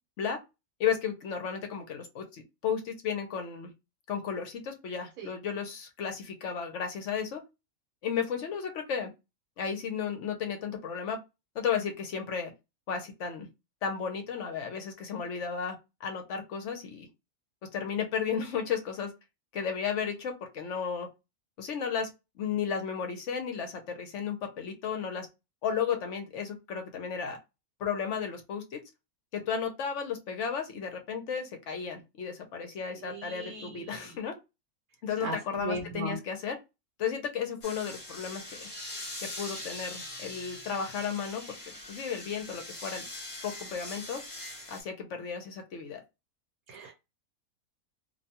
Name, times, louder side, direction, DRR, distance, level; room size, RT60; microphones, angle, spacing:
voice 1, 0.8-3.7 4.1-7.4 8.0-9.1 9.6-11.2 11.5-12.5 12.9-13.5 13.8-17.1 17.7-19.1 19.5-21.1 21.6-22.1 22.4-25.3 25.6-27.4 27.8-28.8 29.3-34.3 35.0-36.6 37.0-38.7 39.2-41.6 41.9-43.1 43.4-44.2 44.7-46.0, left 7 dB, 65° left, 5 dB, 0.8 m, -34 dB
voice 2, 33.0-34.1 35.2-36.2 46.7-46.9, right 3 dB, 75° right, 0 dB, 1.2 m, -38 dB
sound 1, 37.6-44.8, left 1 dB, 30° left, 0.6 m, -42 dB
2.5 x 2.2 x 2.7 m, 0.24 s
omnidirectional pair, 1.5 m